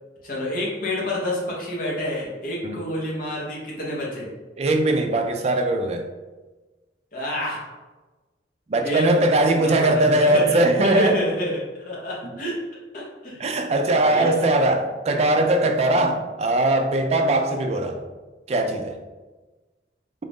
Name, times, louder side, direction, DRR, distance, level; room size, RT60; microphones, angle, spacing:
voice 1, 0.2-4.3 7.1-7.6 8.8-12.6 12.9-13.6 14.0-14.5 16.0-16.1, left 1 dB, 50° left, -4 dB, 1.1 m, -28 dB
voice 2, 4.6-6.0 8.7-11.2 13.4-18.0 18.5-19.0, right 1 dB, 35° right, 4 dB, 0.4 m, -20 dB
3.7 x 2.5 x 3.6 m, 1.2 s
head